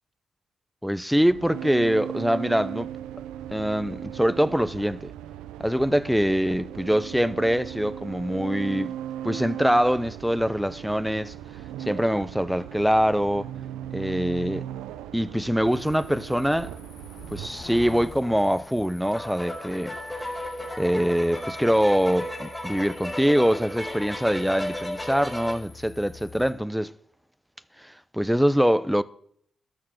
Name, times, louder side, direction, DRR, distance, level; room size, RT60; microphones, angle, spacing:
voice 1, 0.8-2.9 3.5-5.1 5.6-8.9 9.2-11.3 11.8-13.5 13.9-14.7 15.1-16.7 17.3-19.9 20.8-26.9 27.8-29.0, equal, ahead, 0.7 m, -24 dB
sound 1, 1.3-17.5, right 11 dB, 85° right, 0.6 m, -38 dB
sound 2, 15.6-26.5, left 4 dB, 70° left, 2.2 m, -47 dB
sound 3, 19.0-25.5, left 1 dB, 15° left, 4.9 m, -35 dB
12.5 x 6.6 x 6.3 m
hypercardioid pair, 45°, 0 cm